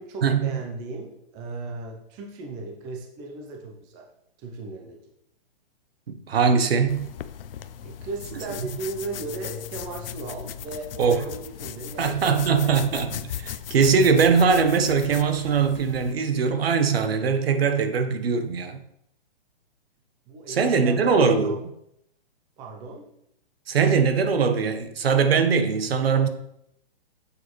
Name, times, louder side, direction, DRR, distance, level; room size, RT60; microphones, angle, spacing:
voice 1, 0.0-4.1 4.4-5.0 7.8-12.9 20.3-21.7 22.6-23.1, right 3 dB, 15° right, 0.5 m, -37 dB
voice 2, 6.1-7.1 11.0-11.2 12.0-18.8 20.5-21.5 23.7-26.3, right 5 dB, 80° right, 1.1 m, -21 dB
sound 1, 6.9-16.1, left 10 dB, 70° left, 0.5 m, -38 dB
7.1 x 6.4 x 3.1 m
hypercardioid pair, 160°, 30 cm